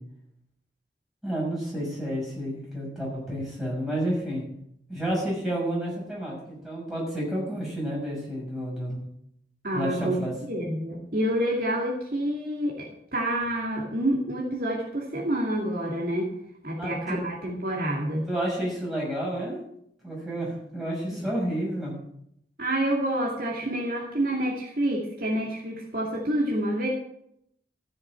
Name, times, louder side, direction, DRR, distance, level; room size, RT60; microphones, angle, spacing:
voice 1, 1.2-4.4 4.9-9.0 9.7-10.3 16.8-17.2 18.3-19.6 20.0-21.9, right 1 dB, ahead, -4 dB, 6.4 m, -30 dB
voice 2, 9.6-10.2 10.5-16.3 16.6-18.3 21.1-21.3 22.6-26.9, right 1 dB, 50° right, -2 dB, 2.5 m, -28 dB
14.0 x 7.1 x 7.5 m, 0.73 s
head